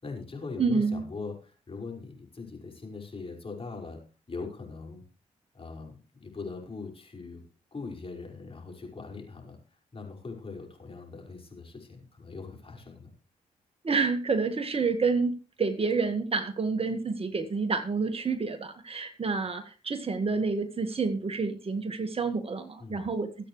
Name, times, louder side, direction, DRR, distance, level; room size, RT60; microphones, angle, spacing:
voice 1, 0.0-4.0 4.3-5.0 5.5-7.4 7.7-9.6 9.9-13.1 22.8-23.1, left 4 dB, 40° left, 0 dB, 5.5 m, -41 dB
voice 2, 0.6-1.0 13.8-23.3, right 4 dB, 40° right, 8 dB, 1.7 m, -28 dB
21.5 x 8.5 x 3.2 m, 0.35 s
supercardioid pair, 50°, 15 cm